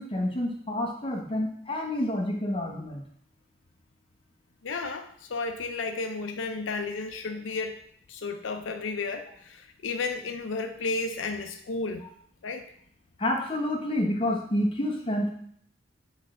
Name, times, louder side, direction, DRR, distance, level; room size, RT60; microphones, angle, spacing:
voice 1, 0.0-3.0 13.2-15.3, left 1 dB, 30° left, 0 dB, 1.0 m, -28 dB
voice 2, 4.6-7.8 8.1-12.0 12.4-12.6, left 3 dB, 85° left, 6 dB, 0.5 m, -33 dB
8.0 x 3.2 x 3.7 m, 0.64 s
head